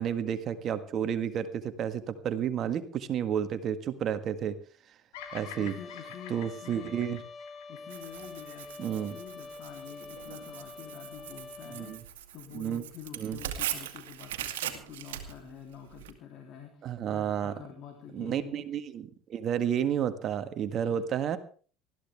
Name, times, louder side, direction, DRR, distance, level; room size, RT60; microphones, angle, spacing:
voice 1, 0.0-4.6 5.3-5.7 6.3-7.2 8.8-9.2 11.7-12.0 12.5-12.8 13.2-13.4 16.8-17.5 18.1-21.4, right 9 dB, 50° right, 10 dB, 1.7 m, -31 dB
Bird vocalization bird call bird song, 5.1-9.4, left 8 dB, 80° left, 2.5 m, -48 dB
Trumpet, 5.2-12.0, left 4 dB, 30° left, 2.2 m, -46 dB
voice 2, 5.3-7.0 7.7-18.6 20.8-21.1, left 8 dB, 60° left, 2 dB, 3.2 m, -47 dB
Tearing, 7.9-16.1, right 11 dB, 85° right, 2.0 m, -40 dB
20.5 x 14.0 x 3.5 m, 0.41 s
hypercardioid pair, 75°, 0 cm